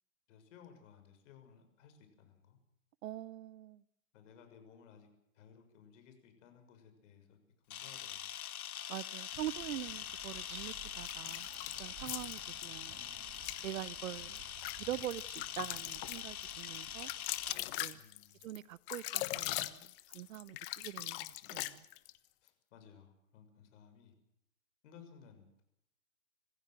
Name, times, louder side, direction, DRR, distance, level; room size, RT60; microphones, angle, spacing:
voice 1, 0.3-2.6 4.1-5.1 5.3-7.4 7.7-8.3 17.9-18.5 22.4-24.1 24.8-25.5, left 7 dB, 60° left, 6.7 m, -59 dB
voice 2, 3.0-3.8 8.9-11.5 11.8-13.0 13.6-14.4 14.8-17.1 17.8-18.0 18.4-21.9, right 13 dB, 65° right, 0.8 m, -44 dB
Camera, 7.7-17.6, left 10 dB, 90° left, 1.3 m, -44 dB
sound 1, 9.3-17.8, right 12 dB, 25° right, 1.7 m, -57 dB
sound 2, 11.0-12.7 13.3-13.6 14.1-22.2, left 19 dB, 40° left, 1.3 m, -41 dB
26.0 x 16.0 x 7.7 m
hypercardioid pair, 135°, 42 cm